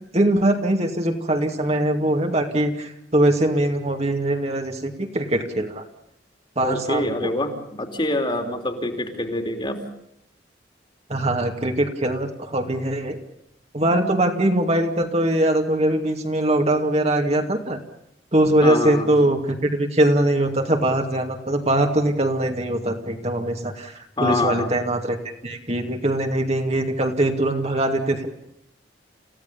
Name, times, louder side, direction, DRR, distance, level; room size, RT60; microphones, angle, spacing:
voice 1, 0.1-5.8 6.6-7.1 11.1-13.2 13.7-17.8 18.3-23.9 24.2-25.2 25.4-28.3, right 1 dB, 35° right, 4 dB, 2.4 m, -22 dB
voice 2, 6.6-9.8 18.6-19.1 24.2-24.7, left 1 dB, 25° left, 5 dB, 3.3 m, -25 dB
29.0 x 16.5 x 7.0 m, 0.79 s
head